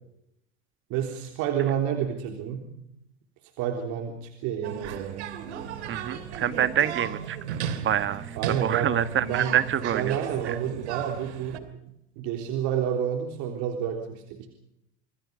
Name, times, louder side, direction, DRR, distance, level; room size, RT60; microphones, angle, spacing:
voice 1, 0.9-2.8 3.6-5.3 8.3-9.6 9.9-11.7 12.2-14.5, right 9 dB, 65° right, 3 dB, 3.6 m, -29 dB
sound 1, 4.6-11.6, right 8 dB, 90° right, 2.6 m, -35 dB
voice 2, 5.9-10.2 10.5-10.6, right 10 dB, 35° right, 12 dB, 1.7 m, -27 dB
27.0 x 21.5 x 5.3 m, 0.79 s
supercardioid pair, 100°, 33 cm